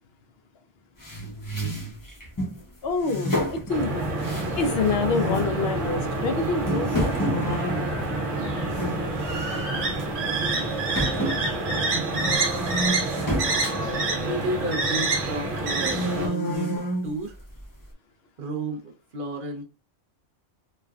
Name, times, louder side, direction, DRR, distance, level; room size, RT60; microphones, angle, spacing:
sound 1, 1.0-2.6 3.0-4.8 5.1-5.5 6.1-6.2 6.7-9.0 9.3-9.6 10.0-10.1 10.9-14.9 15.4-17.1, equal, 20° left, 0.6 m, -30 dB
voice 1, 2.8-4.1 4.6-7.1, left 4 dB, 65° left, 0.7 m, -26 dB
sound 2, 3.7-16.3, right 2 dB, 75° right, 1.2 m, -27 dB
voice 2, 14.2-17.4 18.4-19.6, right 1 dB, 50° right, 0.7 m, -32 dB
3.2 x 2.2 x 2.4 m
omnidirectional pair, 1.3 m